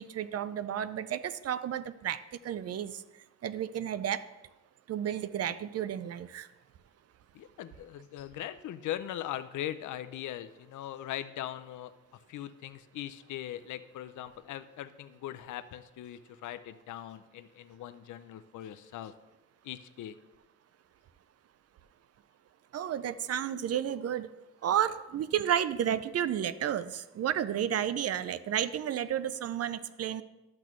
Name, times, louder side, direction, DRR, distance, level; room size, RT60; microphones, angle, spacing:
voice 1, 0.0-3.0 3.4-4.3 4.9-6.5 22.7-24.3 24.6-30.2, right 10 dB, 55° right, 14 dB, 0.5 m, -32 dB
voice 2, 7.3-11.9 12.3-19.1 19.6-20.2, left 12 dB, 80° left, 11 dB, 0.5 m, -40 dB
12.0 x 6.0 x 3.1 m, 1.0 s
cardioid pair, 110°, 30 cm